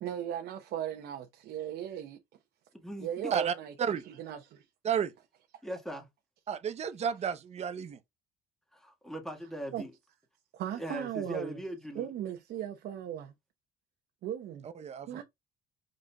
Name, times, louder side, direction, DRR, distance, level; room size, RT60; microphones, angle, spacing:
voice 1, 0.0-2.2 3.0-4.6 9.7-9.9 10.5-11.6 11.9-13.3 14.2-14.7 15.1-15.2, right 10 dB, 70° right, 0.8 m, -37 dB
voice 2, 2.7-3.3 5.6-6.1 8.7-9.9 10.8-12.1, equal, ahead, 1.6 m, -40 dB
voice 3, 3.3-4.0 4.8-5.1 6.5-8.0 14.8-15.2, right 7 dB, 40° right, 0.7 m, -32 dB
5.0 x 4.3 x 2.3 m
cardioid pair, 110°, 17 cm